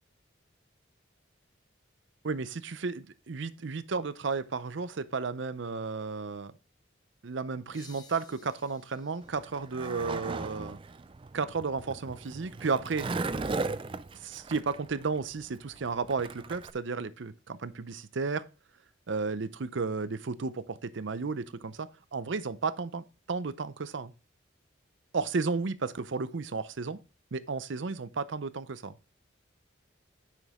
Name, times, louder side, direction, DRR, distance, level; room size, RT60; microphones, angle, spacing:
voice 1, 2.2-6.5 7.2-10.8 11.3-13.1 14.1-18.5 19.1-24.1 25.1-27.0 27.3-28.9, right 4 dB, 70° right, 0.6 m, -33 dB
sound 1, 7.7-11.1, left 4 dB, 20° left, 1.0 m, -58 dB
Skateboard, 9.2-16.7, right 3 dB, 25° right, 0.4 m, -37 dB
9.9 x 6.1 x 3.6 m
head